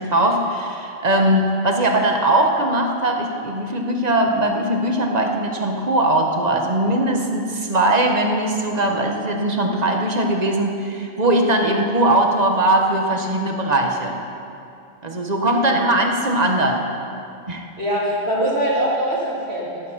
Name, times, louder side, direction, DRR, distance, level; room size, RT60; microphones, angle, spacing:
voice 1, 0.0-14.1 15.0-16.8 17.5-17.6, right 1 dB, 40° right, 2 dB, 1.3 m, -20 dB
voice 2, 17.8-19.8, right 1 dB, 70° right, -5 dB, 3.0 m, -22 dB
18.5 x 7.3 x 5.8 m, 2.6 s
omnidirectional pair, 1.1 m